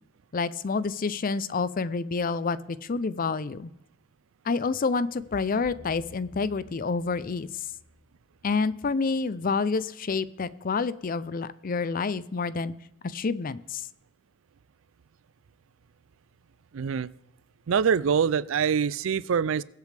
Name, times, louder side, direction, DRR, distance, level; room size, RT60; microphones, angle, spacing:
voice 1, 0.3-3.7 4.5-7.5 8.4-12.7 13.0-13.9, left 4 dB, 40° left, 16 dB, 0.5 m, -28 dB
sound 1, 5.2-9.3, left 1 dB, 80° left, 1.9 m, -53 dB
voice 2, 16.7-17.1 17.7-19.6, right 7 dB, 70° right, 20 dB, 0.4 m, -24 dB
22.0 x 8.3 x 3.4 m, 0.87 s
head